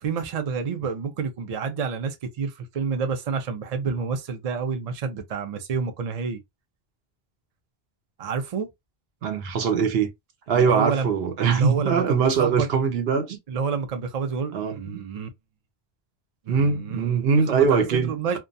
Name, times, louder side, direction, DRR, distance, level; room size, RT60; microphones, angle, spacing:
voice 1, 0.0-6.4 8.2-8.7 10.5-11.1 11.5-12.7 13.5-15.3 16.5-17.2 17.5-18.4, right 5 dB, 50° right, 0.5 m, -29 dB
voice 2, 9.2-10.1 10.5-13.4 14.5-15.0 16.5-18.4, right 6 dB, 70° right, 0.9 m, -22 dB
2.4 x 2.2 x 2.5 m
omnidirectional pair, 1.1 m